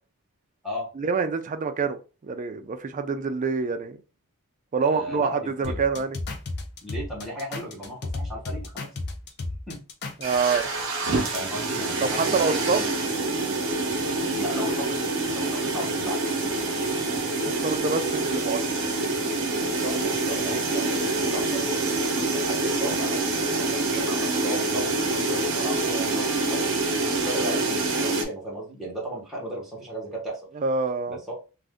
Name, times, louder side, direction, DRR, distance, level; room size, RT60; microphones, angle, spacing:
voice 1, 1.0-2.0 2.2-4.0 4.7-6.2 10.2-10.7 12.0-12.8 17.4-18.6 30.6-31.2, right 4 dB, 35° right, 9 dB, 0.3 m, -26 dB
voice 2, 4.8-5.8 6.8-8.9 9.7-9.8 11.3-12.9 14.3-15.0 15.3-16.2 19.6-26.8 27.1-30.4 31.1-31.3, equal, ahead, -5 dB, 1.0 m, -35 dB
sound 1, 5.6-10.5, left 2 dB, 50° left, 0.6 m, -33 dB
sound 2, 10.2-28.2, right 3 dB, 60° right, 0.8 m, -26 dB
2.5 x 2.4 x 3.4 m, 0.33 s
head